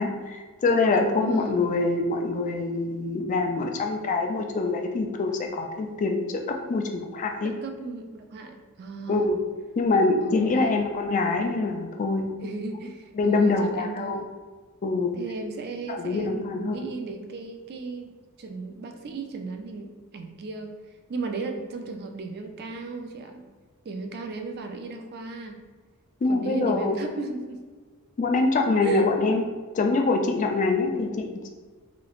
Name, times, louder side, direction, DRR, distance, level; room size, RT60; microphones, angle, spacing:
voice 1, 0.0-6.4 6.7-7.5 9.1-9.4 9.8-12.3 13.2-14.2 14.8-15.1 15.9-16.9 26.2-27.0 28.2-29.4 29.7-31.3, left 3 dB, 35° left, 4 dB, 0.3 m, -24 dB
voice 2, 1.2-1.7 7.4-9.3 10.0-10.9 12.4-14.2 15.1-18.1 18.4-20.7 21.1-23.5 23.8-25.6 26.3-27.6 28.6-29.1, right 3 dB, 45° right, 5 dB, 0.3 m, -35 dB
3.1 x 3.0 x 2.3 m, 1.4 s
head